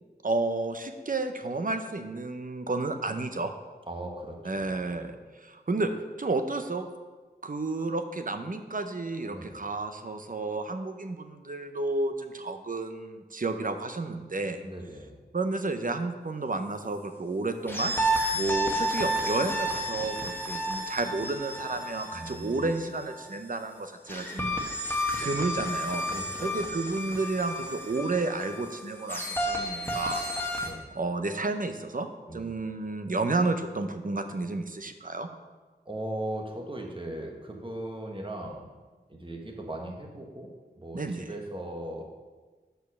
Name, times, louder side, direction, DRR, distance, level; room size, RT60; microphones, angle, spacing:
voice 1, 0.2-3.5 4.4-5.9 6.2-6.9 7.4-14.6 15.3-17.9 18.3-24.9 25.2-26.1 26.4-30.2 30.9-35.3 40.9-41.3, right 3 dB, 50° right, 7 dB, 0.7 m, -31 dB
voice 2, 3.9-5.0 9.3-9.6 14.6-15.1 18.4-18.6 22.1-22.7 26.0-26.7 30.6-30.9 32.3-32.5 35.8-38.7 39.1-40.5 40.8-42.0, right 1 dB, 30° right, 1 dB, 1.3 m, -38 dB
sound 1, 17.7-23.3 24.1-30.7, equal, 10° left, 1.3 m, -31 dB
6.3 x 5.3 x 6.1 m, 1.3 s
wide cardioid pair, 55°, 17 cm